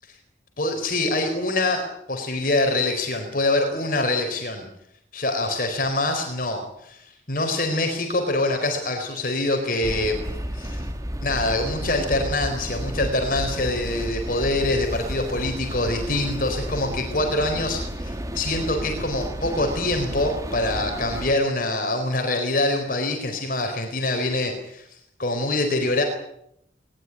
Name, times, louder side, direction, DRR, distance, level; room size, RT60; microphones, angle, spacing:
voice 1, 0.6-4.7 5.1-10.2 10.5-10.8 11.2-24.8 25.2-26.0, left 2 dB, 50° left, 4 dB, 4.4 m, -25 dB
sound 1, 9.8-21.3, equal, 20° right, 2.0 m, -32 dB
21.0 x 19.5 x 10.0 m, 0.76 s
head